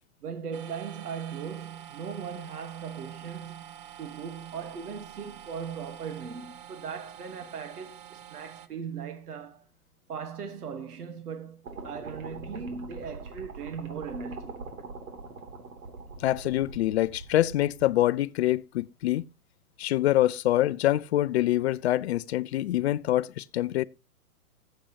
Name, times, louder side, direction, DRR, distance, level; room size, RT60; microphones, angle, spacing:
voice 1, 0.2-9.7 10.1-14.7, right 6 dB, 80° right, 1.7 m, -38 dB
sound 1, 0.5-8.7, right 10 dB, 35° right, 0.8 m, -47 dB
sound 2, 11.6-17.9, right 4 dB, 65° right, 3.1 m, -43 dB
voice 2, 16.2-19.2 19.8-23.8, left 14 dB, 45° left, 0.5 m, -25 dB
20.0 x 7.8 x 2.9 m
hypercardioid pair, 130°, 45 cm